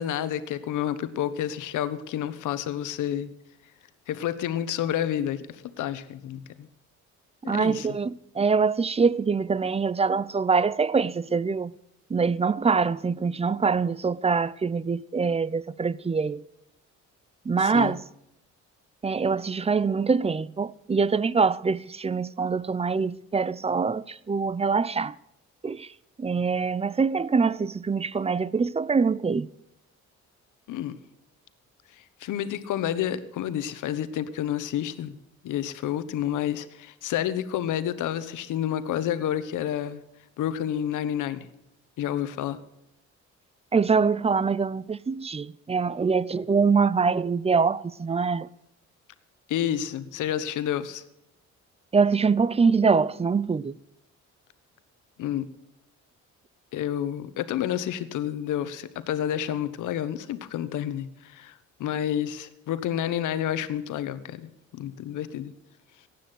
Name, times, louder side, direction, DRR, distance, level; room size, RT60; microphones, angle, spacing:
voice 1, 0.0-3.3 4.1-6.7 7.4-7.9 17.6-18.0 30.7-31.0 32.0-35.2 35.4-40.0 40.4-41.5 42.0-42.6 49.5-51.0 55.2-55.5 56.7-61.5 61.8-65.5, left 10 dB, 80° left, 1.1 m, -29 dB
voice 2, 7.5-11.7 12.1-16.4 17.5-18.0 19.0-25.2 25.6-25.9 26.2-29.5 43.7-48.5 51.9-53.8, right 5 dB, 20° right, 0.5 m, -24 dB
15.5 x 9.5 x 7.9 m
cardioid pair, 90°, 30 cm